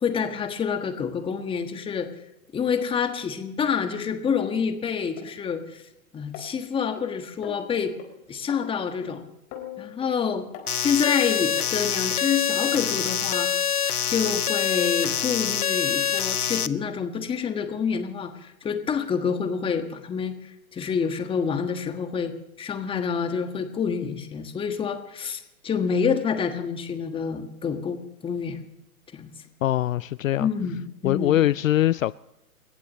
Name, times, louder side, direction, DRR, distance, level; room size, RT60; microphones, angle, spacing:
voice 1, 0.0-2.1 2.5-5.8 6.1-7.9 8.3-9.3 9.8-10.5 10.8-13.5 14.1-20.4 20.7-22.3 22.6-28.6 29.1-29.3 30.4-31.4, left 6 dB, 10° left, 1.4 m, -27 dB
sound 1, 5.2-5.3 6.3-7.0 7.4-7.6 8.0-8.1 8.5-8.6 9.0-9.1 9.5-10.1 10.5-10.7 11.1-11.2 11.6-11.7 12.1-12.2 12.6-12.7 13.4-13.5, left 10 dB, 30° left, 4.4 m, -40 dB
sound 2, 10.7-16.7, left 8 dB, 85° left, 0.9 m, -25 dB
voice 2, 29.6-30.5 31.0-32.2, left 13 dB, 65° left, 0.5 m, -22 dB
29.0 x 15.0 x 3.1 m
hypercardioid pair, 125°, 44 cm